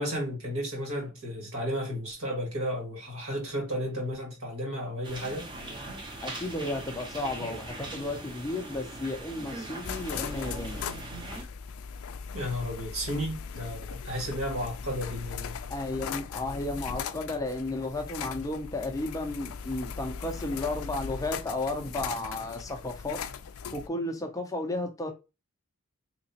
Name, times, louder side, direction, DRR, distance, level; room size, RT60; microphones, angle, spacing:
voice 1, 0.0-5.5 12.3-15.6, equal, 75° right, 1.9 m, -33 dB
sound 1, 5.0-11.4, right 2 dB, 20° right, 0.7 m, -40 dB
voice 2, 6.2-10.8 15.7-23.2 23.7-25.1, left 2 dB, 15° left, 0.5 m, -33 dB
sound 2, 9.8-23.9, left 6 dB, 75° left, 0.4 m, -39 dB
3.7 x 2.9 x 2.8 m
head